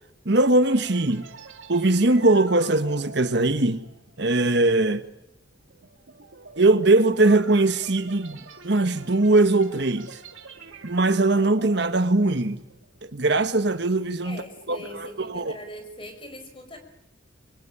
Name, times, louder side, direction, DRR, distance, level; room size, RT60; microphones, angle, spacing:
voice 1, 0.2-1.3 1.7-3.9 4.2-5.0 6.6-8.4 8.6-10.2 10.8-12.6 13.1-14.4 14.7-14.8 15.3-15.5, right 2 dB, 60° right, 1.3 m, -20 dB
sound 1, 0.6-13.1 13.5-13.7 14.2-15.5, right 4 dB, 90° right, 3.2 m, -46 dB
voice 2, 14.2-16.8, left 1 dB, 25° left, 5.0 m, -41 dB
24.5 x 24.0 x 9.9 m
head